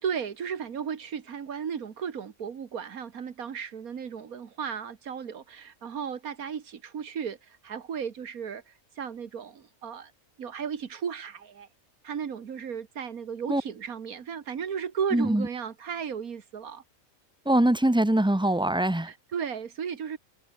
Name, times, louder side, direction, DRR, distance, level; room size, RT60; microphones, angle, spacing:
voice 1, 0.0-10.1 10.4-11.7 12.0-16.8 19.0-20.2, right 7 dB, 85° right, 1.9 m, -35 dB
voice 2, 15.1-15.5 17.5-19.1, right 1 dB, 5° right, 0.4 m, -23 dB
omnidirectional pair, 1.5 m